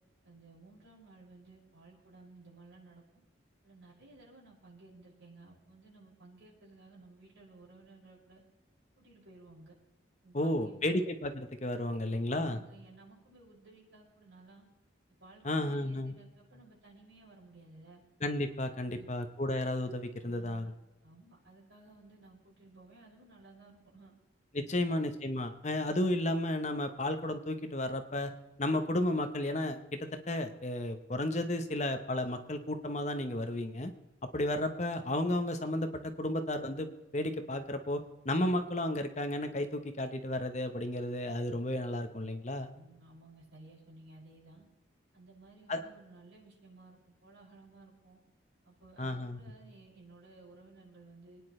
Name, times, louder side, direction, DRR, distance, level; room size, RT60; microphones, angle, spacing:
voice 1, 0.2-3.0 3.6-8.4 9.0-9.7 10.2-10.9 12.3-14.6 15.2-18.0 18.8-19.1 20.2-20.7 21.0-24.1 24.6-24.9 42.7-44.6 45.1-48.2 48.6-51.4, right 2 dB, 70° right, -5 dB, 6.0 m, -56 dB
voice 2, 10.3-12.6 15.4-16.1 18.2-20.7 24.5-28.3 28.6-33.9 34.3-42.7 45.7-45.8 49.0-49.4, left 1 dB, 35° left, 7 dB, 1.0 m, -33 dB
26.0 x 10.0 x 3.2 m, 1.0 s
head